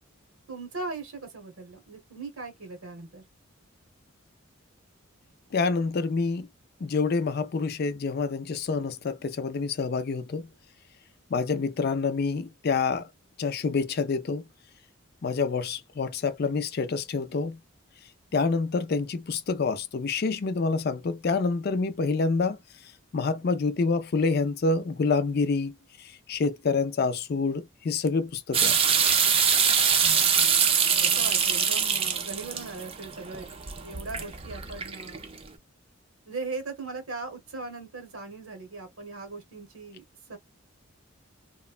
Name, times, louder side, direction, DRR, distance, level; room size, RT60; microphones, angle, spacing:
voice 1, 0.5-3.2 29.9-30.5 31.0-35.2 36.3-40.0 40.3-40.4, right 3 dB, 90° right, 1.0 m, -39 dB
voice 2, 5.5-6.5 6.8-10.5 11.3-13.1 13.4-14.4 15.2-17.6 18.3-22.6 23.1-25.7 26.0-28.8, left 4 dB, 45° left, 0.4 m, -27 dB
sound 1, 28.5-35.4, right 7 dB, 25° right, 0.4 m, -24 dB
3.0 x 2.1 x 2.4 m
head